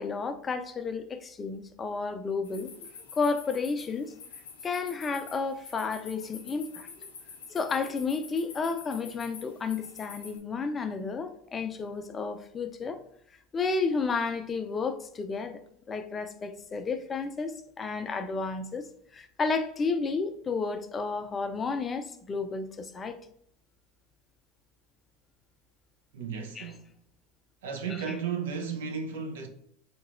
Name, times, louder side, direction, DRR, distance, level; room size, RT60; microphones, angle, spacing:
voice 1, 0.0-2.8 3.1-4.1 4.6-6.9 7.5-13.0 13.5-15.6 15.9-18.8 19.1-23.2 26.6-26.7 27.9-28.0, left 4 dB, 25° left, 0.4 m, -32 dB
sound 1, 2.4-10.4, left 5 dB, 80° left, 0.6 m, -47 dB
voice 2, 26.1-26.8 27.6-29.5, right 6 dB, 80° right, 0.6 m, -34 dB
3.8 x 2.8 x 2.5 m
hypercardioid pair, 90°, 0 cm